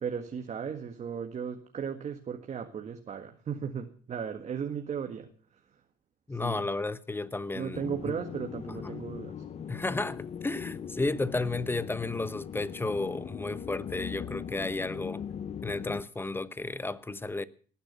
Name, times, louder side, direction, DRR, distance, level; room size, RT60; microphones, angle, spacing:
voice 1, 0.0-5.3 6.3-6.6 7.5-9.4, right 7 dB, 40° right, 1.8 m, -36 dB
voice 2, 6.3-8.1 8.8-8.9 9.7-15.2 15.6-17.4, left 2 dB, 15° left, 0.9 m, -33 dB
sound 1, 7.7-16.0, left 8 dB, 40° left, 0.8 m, -40 dB
19.0 x 10.5 x 6.9 m
cardioid pair, 110°, 17 cm